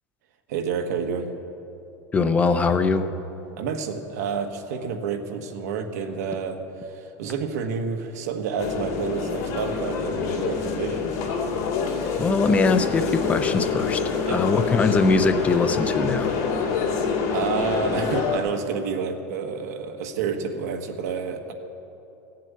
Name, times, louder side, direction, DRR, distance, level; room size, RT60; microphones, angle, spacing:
voice 1, 0.5-1.3 3.6-6.6 6.8-11.1 14.3-14.4 17.3-21.5, right 5 dB, 90° right, 5 dB, 1.5 m, -29 dB
voice 2, 2.1-3.1 12.2-16.3, left 4 dB, 15° left, 9 dB, 0.5 m, -22 dB
sound 1, 8.6-18.4, left 5 dB, 70° left, 2.7 m, -26 dB
16.0 x 7.5 x 9.4 m, 2.8 s
supercardioid pair, 165°, 9 cm